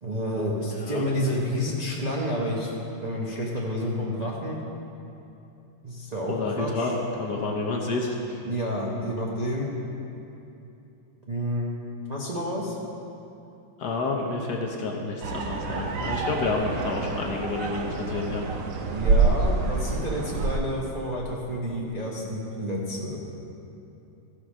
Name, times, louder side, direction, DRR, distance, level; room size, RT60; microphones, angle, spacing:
voice 1, 0.0-2.7 3.0-4.6 5.8-6.9 8.4-9.7 11.3-11.8 12.1-12.7 18.9-23.2, equal, 45° right, -5 dB, 0.5 m, -29 dB
voice 2, 0.7-1.0 6.3-6.9 7.2-8.4 13.8-18.4, left 3 dB, 60° left, 0 dB, 1.2 m, -29 dB
sound 1, 15.2-20.6, right 4 dB, 85° right, 0.7 m, -27 dB
14.5 x 5.0 x 6.2 m, 2.8 s
omnidirectional pair, 2.3 m